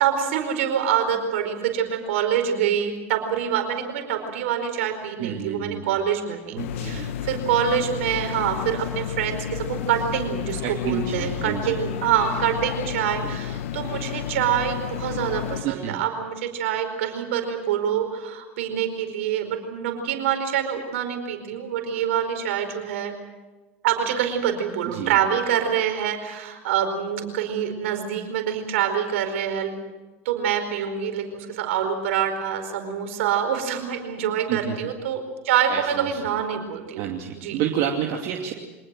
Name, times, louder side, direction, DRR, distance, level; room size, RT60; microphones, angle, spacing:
voice 1, 0.0-23.1 23.8-29.7 30.2-37.0 37.3-37.6, right 9 dB, 75° right, 6 dB, 4.7 m, -25 dB
voice 2, 5.2-6.0 6.5-7.2 10.6-11.8 13.2-13.4 15.6-16.0 24.9-25.2 34.5-34.9 35.7-36.2 37.0-38.5, right 9 dB, 55° right, 1 dB, 2.6 m, -29 dB
sound 1, 6.6-15.6, left 10 dB, 75° left, 1.0 m, -31 dB
25.5 x 19.5 x 7.7 m, 1.2 s
hypercardioid pair, 90°, 7 cm